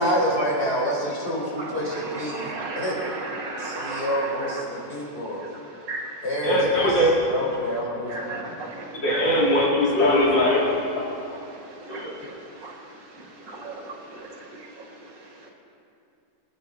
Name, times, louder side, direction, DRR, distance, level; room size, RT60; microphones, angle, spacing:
voice 1, 0.0-3.0 3.6-5.4 6.2-8.2, equal, 35° left, -4 dB, 4.3 m, -27 dB
voice 2, 1.6-4.6 5.5-6.2 8.1-9.5 11.5-14.9 15.4-15.5, right 2 dB, 70° right, 0 dB, 2.6 m, -36 dB
voice 3, 6.4-7.1 8.9-10.6 11.0-11.4 11.9-12.3 14.1-14.2, left 1 dB, 75° left, -5 dB, 3.6 m, -21 dB
27.0 x 9.6 x 4.1 m, 2.6 s
omnidirectional pair, 2.0 m